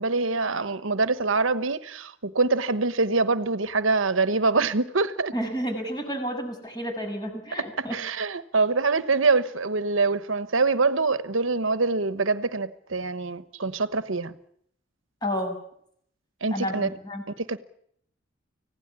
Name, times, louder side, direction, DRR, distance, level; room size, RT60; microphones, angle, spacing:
voice 1, 0.0-5.3 7.8-14.3 16.4-16.9 17.4-17.6, right 3 dB, 75° right, 1.2 m, -24 dB
voice 2, 5.3-8.0 15.2-15.6 16.5-17.2, equal, 20° left, 6.7 m, -31 dB
25.5 x 17.0 x 9.8 m
head